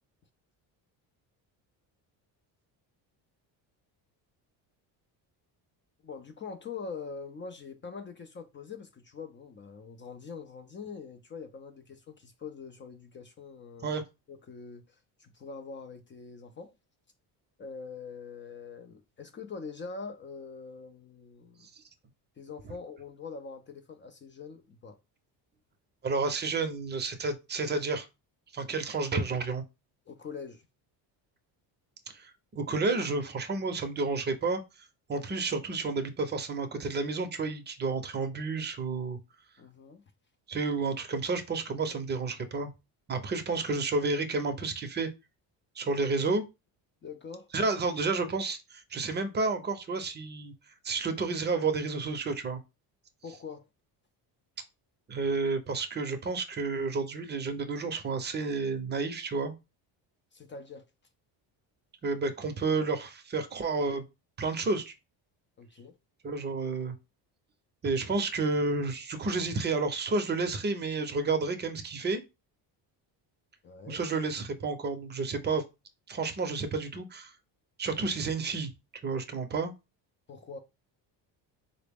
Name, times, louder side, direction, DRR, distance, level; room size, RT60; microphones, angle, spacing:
voice 1, 6.0-14.0 14.3-16.7 17.6-21.7 22.4-25.0 30.1-30.7 39.6-40.0 47.0-47.5 53.2-53.7 60.3-60.8 65.6-66.0 73.6-74.0 80.3-80.6, left 5 dB, 30° left, 0.3 m, -44 dB
voice 2, 26.0-28.1 28.5-29.6 32.1-32.3 32.6-34.6 35.1-39.2 40.5-42.7 43.1-45.1 45.8-46.4 47.5-50.5 50.8-52.6 55.1-59.5 62.0-64.0 64.4-64.9 66.2-66.9 67.8-72.2 73.9-75.6 76.1-77.3 77.8-78.7 79.0-79.7, right 3 dB, 25° right, 0.5 m, -30 dB
3.9 x 2.0 x 3.4 m
cardioid pair, 110°, 44 cm